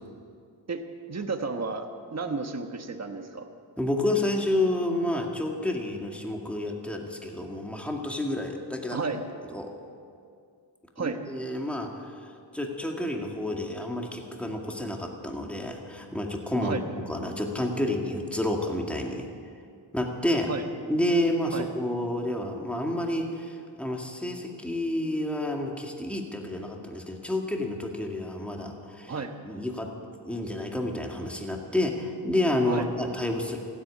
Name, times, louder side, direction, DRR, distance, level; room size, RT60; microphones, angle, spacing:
voice 1, 1.1-3.5 8.9-9.2 11.0-11.2 16.6-16.8 20.5-20.6 21.5-21.7 29.1-29.3 32.7-32.9, right 4 dB, 35° right, 6 dB, 1.2 m, -32 dB
voice 2, 3.8-9.0 9.5-9.7 11.0-11.9 12.5-19.3 19.9-20.5 20.9-29.1 29.4-29.9 30.2-33.6, left 1 dB, 5° left, 1 dB, 2.0 m, -29 dB
15.5 x 8.6 x 9.7 m, 2.3 s
cardioid pair, 60°, 47 cm